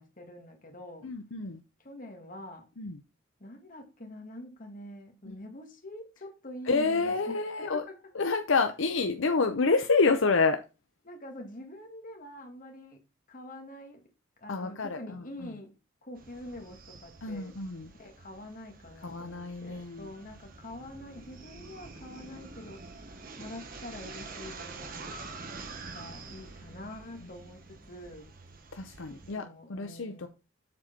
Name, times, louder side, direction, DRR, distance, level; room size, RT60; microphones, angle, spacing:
voice 1, 0.0-1.1 1.8-2.7 3.4-8.0 11.1-13.0 13.3-14.0 14.4-17.6 17.9-25.1 25.9-28.3 29.1-30.3, left 1 dB, 40° left, 1.9 m, -45 dB
voice 2, 1.0-1.6 2.8-3.0 5.3-5.4 6.7-7.8 8.1-10.6 14.5-15.5 17.2-17.9 19.0-20.1 28.7-30.3, left 4 dB, 70° left, 0.7 m, -28 dB
sound 1, 16.2-29.3, right 3 dB, 45° right, 1.3 m, -47 dB
7.5 x 4.5 x 5.7 m
head